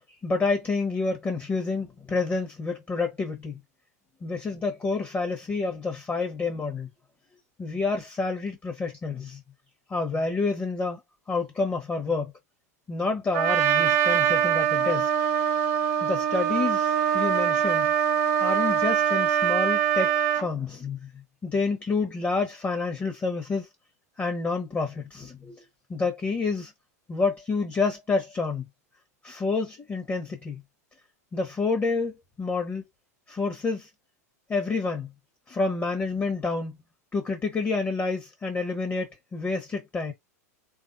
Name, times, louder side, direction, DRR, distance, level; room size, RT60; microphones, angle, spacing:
voice 1, 0.2-3.6 4.2-6.9 7.6-9.4 9.9-11.0 11.3-12.3 12.9-15.1 16.0-17.9 18.4-21.1 21.4-23.7 24.2-25.5 25.9-26.7 27.1-28.6 29.2-30.6 31.3-32.8 33.3-33.9 34.5-35.1 35.5-36.8 37.1-40.1, left 4 dB, 20° left, 0.9 m, -28 dB
Trumpet, 13.3-20.5, right 9 dB, 55° right, 1.0 m, -23 dB
3.3 x 2.5 x 2.6 m
hypercardioid pair, 95°, 9 cm